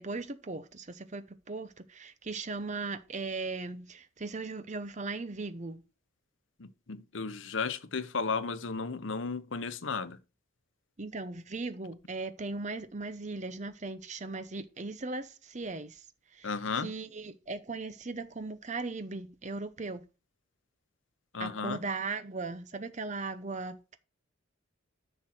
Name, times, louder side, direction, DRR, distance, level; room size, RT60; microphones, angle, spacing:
voice 1, 0.0-5.8 11.0-16.0 16.3-16.5 16.8-20.0 21.4-24.0, right 3 dB, 35° right, 0.7 m, -38 dB
voice 2, 6.6-10.2 16.4-16.9 21.3-21.8, left 4 dB, 70° left, 0.9 m, -34 dB
9.9 x 6.2 x 4.3 m
head